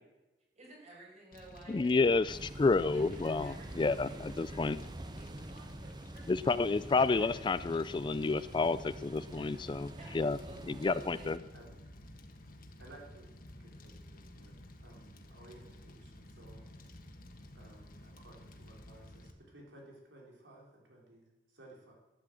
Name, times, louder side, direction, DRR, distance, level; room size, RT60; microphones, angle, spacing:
voice 1, 0.5-2.0 2.9-4.2 4.5-4.7 5.0-6.3 7.1-7.3 9.3-9.5 10.0-10.1 10.4-11.5, right 1 dB, 40° right, -3 dB, 6.0 m, -54 dB
Fire, 1.3-19.3, left 1 dB, 50° left, 1.5 m, -53 dB
voice 2, 1.7-4.8 6.3-10.4 10.7-11.4, left 3 dB, 25° left, 16 dB, 0.3 m, -30 dB
sound 1, 2.3-11.4, right 1 dB, 25° right, 0.5 m, -46 dB
voice 3, 11.2-11.8 12.8-13.3 13.6-16.9 17.5-21.9, right 1 dB, 85° right, -1 dB, 3.8 m, -57 dB
12.0 x 10.0 x 7.7 m, 1.1 s
head